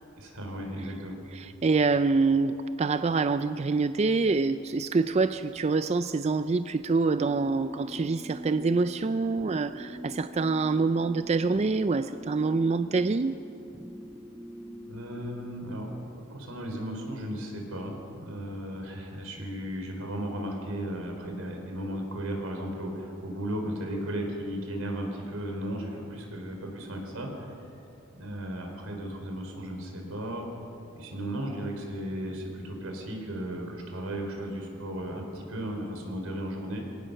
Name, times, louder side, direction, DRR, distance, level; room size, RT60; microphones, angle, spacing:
voice 1, 0.2-1.2 14.9-15.9 16.3-27.5 28.1-30.4 30.9-36.8, right 1 dB, 85° right, 2 dB, 4.1 m, -35 dB
voice 2, 1.3-13.4, right 4 dB, 30° right, 11 dB, 0.4 m, -26 dB
sound 1, 7.2-15.9, equal, 10° right, 0.9 m, -44 dB
23.0 x 17.5 x 6.6 m, 2.9 s
head